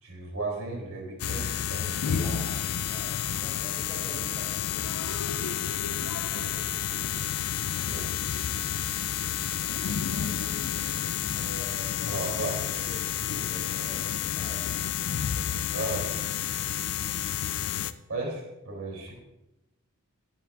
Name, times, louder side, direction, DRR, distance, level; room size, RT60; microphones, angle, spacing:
voice 1, 0.0-2.7 7.8-8.1 12.0-12.6 15.7-16.2 18.1-19.1, right 2 dB, 75° right, -1 dB, 3.3 m, -35 dB
sound 1, 1.2-17.9, left 9 dB, 80° left, 0.4 m, -30 dB
voice 2, 2.2-6.9 10.3-10.6 11.3-14.7 15.3-15.6, equal, 10° right, -4 dB, 4.2 m, -46 dB
18.5 x 7.8 x 2.5 m, 0.95 s
head